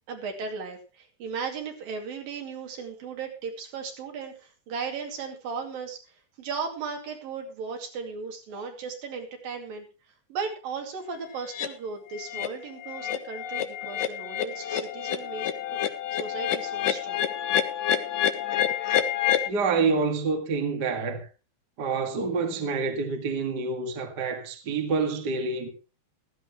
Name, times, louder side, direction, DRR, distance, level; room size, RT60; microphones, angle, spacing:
voice 1, 0.1-9.9 10.3-15.8 16.1-17.3, right 5 dB, 65° right, 4.1 m, -36 dB
sound 1, 11.5-11.7 12.1-12.5 12.8-19.5, left 10 dB, 70° left, 2.4 m, -28 dB
voice 2, 19.5-21.3 21.8-25.7, right 4 dB, 40° right, 1.7 m, -27 dB
16.0 x 14.0 x 3.1 m
omnidirectional pair, 4.5 m